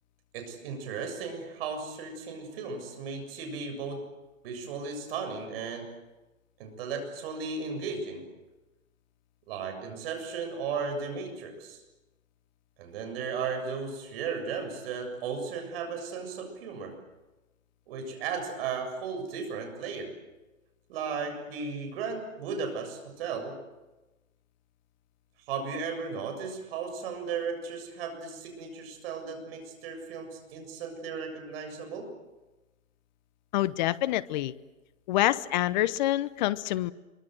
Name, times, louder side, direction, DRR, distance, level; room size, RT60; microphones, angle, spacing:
voice 1, 0.3-4.1 4.4-5.9 6.6-8.3 9.5-11.8 12.8-17.0 17.9-20.2 20.9-23.6 25.5-32.1, right 5 dB, 45° right, 6 dB, 7.4 m, -35 dB
voice 2, 33.5-34.5 35.1-36.9, left 15 dB, 35° left, 16 dB, 0.9 m, -26 dB
26.0 x 24.0 x 7.8 m, 1.1 s
hypercardioid pair, 145°, 40 cm